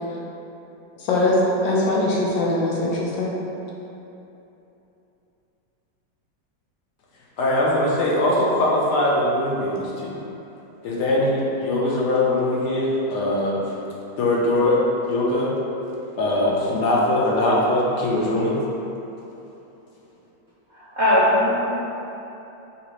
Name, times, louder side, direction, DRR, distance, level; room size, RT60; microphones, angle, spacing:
voice 1, 1.0-1.4 1.6-3.3, left 2 dB, 90° left, -4 dB, 1.5 m, -21 dB
voice 2, 7.4-10.2 10.8-13.6 14.2-14.8 15.1-15.6 16.2-18.6, left 1 dB, 70° left, -4 dB, 1.2 m, -21 dB
voice 3, 20.7-21.6, left 1 dB, 55° right, -11 dB, 0.8 m, -19 dB
5.7 x 2.5 x 3.1 m, 3.0 s
omnidirectional pair, 2.0 m